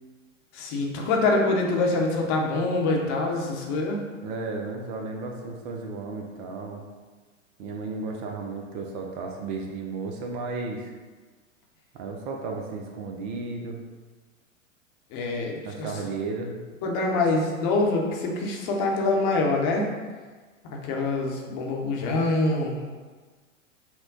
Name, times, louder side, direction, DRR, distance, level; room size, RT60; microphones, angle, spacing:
voice 1, 0.5-4.0 15.1-15.9 16.8-19.9 20.6-22.8, left 2 dB, 40° left, 0 dB, 0.9 m, -25 dB
voice 2, 4.2-6.8 7.6-10.9 11.9-13.8 15.6-16.6, right 3 dB, 40° right, 2 dB, 0.6 m, -34 dB
5.9 x 2.2 x 3.9 m, 1.4 s
figure-of-eight pair, 100°, 40 cm